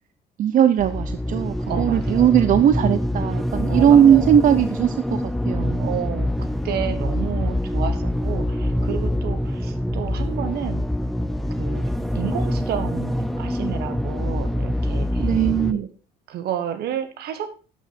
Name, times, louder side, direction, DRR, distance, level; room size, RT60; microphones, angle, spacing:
voice 1, 0.4-6.0 15.2-15.9, right 9 dB, 55° right, 12 dB, 0.6 m, -18 dB
sound 1, 0.8-15.7, left 1 dB, ahead, 0.7 m, -25 dB
voice 2, 1.7-2.3 3.7-4.3 5.7-10.9 11.6-11.8 12.1-15.3 15.7-15.9 16.3-17.5, right 9 dB, 70° right, 10 dB, 1.6 m, -31 dB
12.5 x 6.6 x 4.2 m, 0.34 s
cardioid pair, 110°, 17 cm